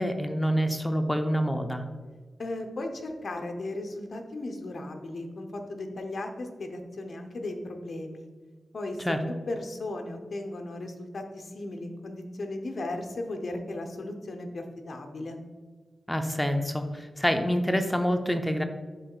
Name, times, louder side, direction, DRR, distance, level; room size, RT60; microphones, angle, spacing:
voice 1, 0.0-1.8 9.0-9.2 16.1-18.6, equal, 15° left, 6 dB, 0.6 m, -27 dB
voice 2, 2.4-8.3 8.7-15.5, left 2 dB, 60° left, 4 dB, 0.9 m, -36 dB
10.5 x 3.7 x 2.4 m, 1.5 s
cardioid pair, 45°, 0 cm